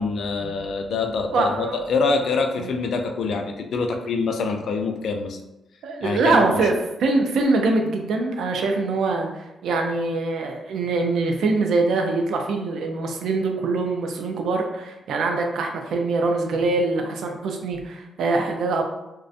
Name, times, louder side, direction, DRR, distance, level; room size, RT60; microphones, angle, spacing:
voice 1, 0.0-5.4 6.0-6.7, left 4 dB, 70° left, 4 dB, 0.3 m, -25 dB
voice 2, 0.9-1.8 2.6-2.7 5.8-6.7 7.0-18.8, right 3 dB, 80° right, 3 dB, 0.4 m, -23 dB
2.4 x 2.1 x 2.6 m, 0.94 s
cardioid pair, 120°, 0 cm